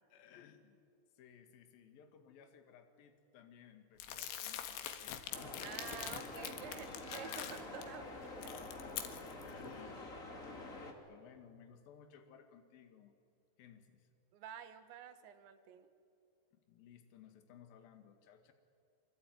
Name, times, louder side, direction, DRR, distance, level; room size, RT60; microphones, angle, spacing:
voice 1, 0.1-0.8 1.1-5.6 6.1-6.5 9.4-10.1 10.4-13.1 13.6-14.1 16.7-18.5, left 8 dB, 60° left, 7 dB, 3.4 m, -59 dB
Crumpling crinkling, 4.0-7.8 8.2-9.5, left 10 dB, 90° left, 4.0 m, -45 dB
sound 1, 5.3-10.9, left 2 dB, 25° left, 2.1 m, -47 dB
voice 2, 5.6-8.5 14.3-15.9, right 9 dB, 80° right, 9 dB, 3.7 m, -50 dB
25.5 x 24.5 x 9.5 m, 2.3 s
omnidirectional pair, 5.2 m